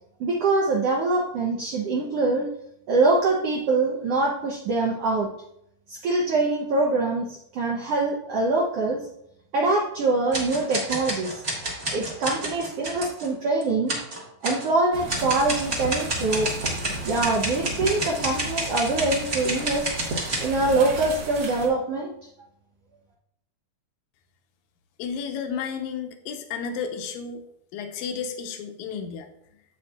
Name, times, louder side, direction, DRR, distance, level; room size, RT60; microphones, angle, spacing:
voice 1, 0.2-2.5 2.9-5.3 5.9-9.0 9.5-11.4 11.9-13.9 14.4-16.5 17.0-19.9 20.4-22.1, right 3 dB, 75° right, 0 dB, 1.4 m, -24 dB
sound 1, 10.3-13.3 13.6-13.7 13.9-14.7 15.1-20.5, right 1 dB, 40° right, 0.9 m, -30 dB
sound 2, 14.9-21.7, right 1 dB, 55° right, 1.6 m, -35 dB
voice 2, 25.0-27.4 27.7-29.3, left 6 dB, 75° left, 5 dB, 2.1 m, -32 dB
8.4 x 7.9 x 2.4 m, 0.78 s
omnidirectional pair, 3.7 m